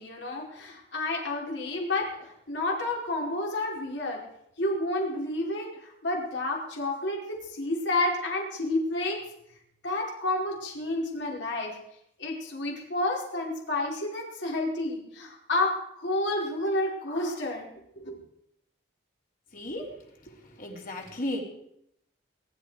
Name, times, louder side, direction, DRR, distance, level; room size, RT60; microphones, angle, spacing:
voice 1, 0.0-4.2 4.6-9.2 9.8-11.8 12.2-18.2, left 2 dB, 65° left, -1 dB, 4.9 m, -30 dB
voice 2, 19.5-19.9 20.3-21.4, left 1 dB, 45° left, 0 dB, 3.5 m, -35 dB
22.0 x 12.0 x 5.0 m, 0.75 s
head